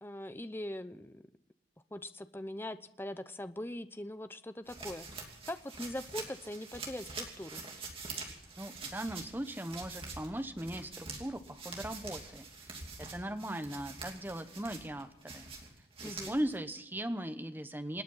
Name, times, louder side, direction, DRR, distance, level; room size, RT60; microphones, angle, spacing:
voice 1, 0.0-1.2 1.9-7.7 16.0-16.4, left 1 dB, 10° left, 11 dB, 0.6 m, -42 dB
sound 1, 4.7-16.6, right 4 dB, 30° right, 2.8 m, -46 dB
voice 2, 8.6-15.5 16.0-18.0, right 1 dB, 10° right, 8 dB, 1.0 m, -39 dB
27.0 x 9.3 x 5.6 m, 0.83 s
head